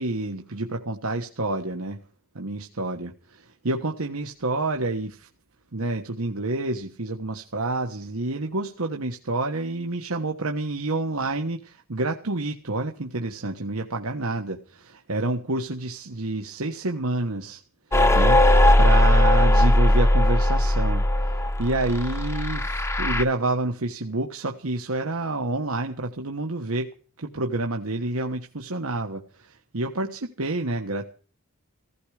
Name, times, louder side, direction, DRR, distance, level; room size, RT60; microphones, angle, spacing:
voice 1, 0.0-2.0 2.3-5.3 5.7-17.6 18.1-31.0, right 2 dB, 90° right, 3 dB, 1.4 m, -28 dB
sound 1, 17.9-23.2, left 1 dB, 10° left, 0.8 m, -19 dB
16.5 x 15.5 x 5.0 m, 0.41 s
head